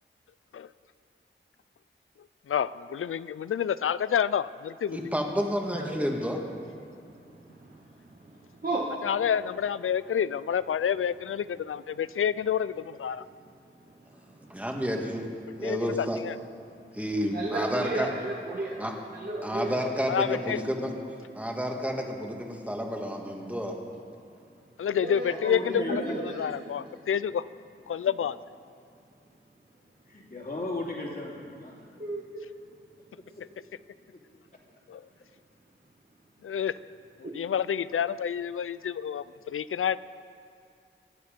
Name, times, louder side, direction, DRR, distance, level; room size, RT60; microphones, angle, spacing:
voice 1, 2.5-5.0 9.0-13.2 15.6-16.3 20.1-20.6 24.8-27.4 27.9-28.4 34.9-35.0 36.4-36.7 37.2-40.0, left 8 dB, 80° left, 17 dB, 0.4 m, -29 dB
voice 2, 4.9-6.4 14.4-15.3 15.6-16.2 16.9-18.1 18.8-18.9 19.4-20.9 21.3-23.8, equal, 5° right, 1 dB, 1.7 m, -30 dB
voice 3, 5.7-6.1 6.8-9.1 13.2-14.6 16.7-17.0 17.3-18.8 19.1-19.8 24.9-26.5 32.0-32.2, right 2 dB, 45° right, -4 dB, 1.6 m, -35 dB
voice 4, 25.3-26.5 30.1-31.8, left 2 dB, 45° left, -3 dB, 2.8 m, -36 dB
23.5 x 9.5 x 5.1 m, 2.5 s
wide cardioid pair, 100°, 21 cm